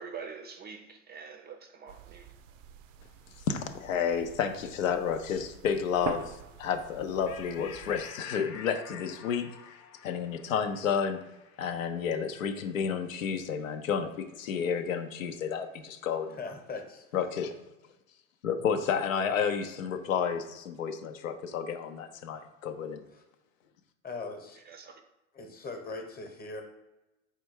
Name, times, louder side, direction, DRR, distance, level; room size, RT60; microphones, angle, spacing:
voice 1, 0.0-2.3 24.7-25.0, right 5 dB, 25° right, 6 dB, 0.4 m, -45 dB
sound 1, 1.9-8.0, right 8 dB, 75° right, 0.5 m, -45 dB
voice 2, 3.5-9.6 10.0-11.2 11.6-16.4 17.1-17.5 18.4-23.0, left 7 dB, 85° left, 7 dB, 0.6 m, -31 dB
sound 2, 7.3-14.1, left 7 dB, 40° left, 0.5 m, -50 dB
voice 3, 16.4-17.1 23.1-23.2 24.0-24.6 25.3-26.6, left 3 dB, 25° left, 4 dB, 0.9 m, -40 dB
4.4 x 2.3 x 4.4 m, 0.98 s
hypercardioid pair, 80°, 39 cm